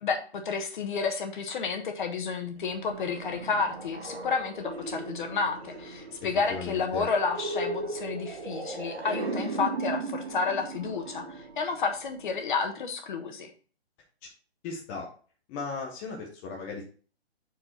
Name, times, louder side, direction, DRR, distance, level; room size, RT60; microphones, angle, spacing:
voice 1, 0.0-13.5, left 5 dB, 50° left, 5 dB, 1.4 m, -31 dB
sound 1, 2.6-12.3, right 3 dB, 65° right, 1.8 m, -37 dB
voice 2, 6.2-7.1 14.6-15.1 15.5-16.8, left 4 dB, 10° left, -1 dB, 0.5 m, -36 dB
6.2 x 4.6 x 4.2 m, 0.39 s
figure-of-eight pair, 140°, 32 cm